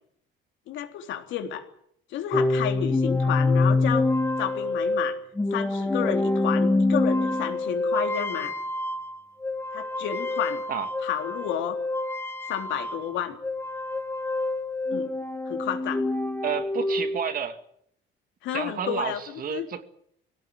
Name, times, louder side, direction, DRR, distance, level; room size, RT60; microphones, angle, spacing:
voice 1, 0.7-1.7 2.1-4.1 4.4-5.2 5.5-8.5 9.7-10.6 11.0-11.8 12.5-13.4 14.9-15.1 15.5-16.1 18.4-19.7, left 10 dB, 80° left, 5 dB, 3.6 m, -31 dB
sound 1, 2.3-13.2 13.4-17.3, left 2 dB, 10° left, 1.4 m, -26 dB
voice 2, 16.4-17.6 18.5-19.8, right 7 dB, 45° right, 9 dB, 2.5 m, -30 dB
22.5 x 18.0 x 9.4 m, 0.71 s
cardioid pair, 120°, 19 cm